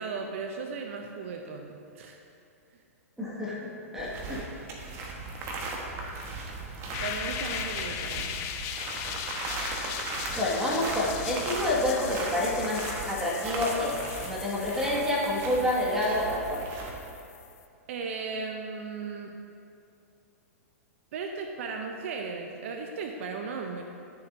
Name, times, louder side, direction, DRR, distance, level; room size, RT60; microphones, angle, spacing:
voice 1, 0.0-2.2 7.0-8.3 17.9-19.3 21.1-23.8, right 4 dB, 60° right, 3 dB, 0.6 m, -36 dB
voice 2, 3.2-4.5 10.3-14.0 14.2-16.7, left 1 dB, 5° right, -6 dB, 1.9 m, -28 dB
sound 1, 4.0-17.0, right 3 dB, 35° right, 1.3 m, -37 dB
sound 2, 6.9-17.6, left 9 dB, 35° left, 0.5 m, -39 dB
11.5 x 6.9 x 2.7 m, 2.5 s
hypercardioid pair, 115°, 8 cm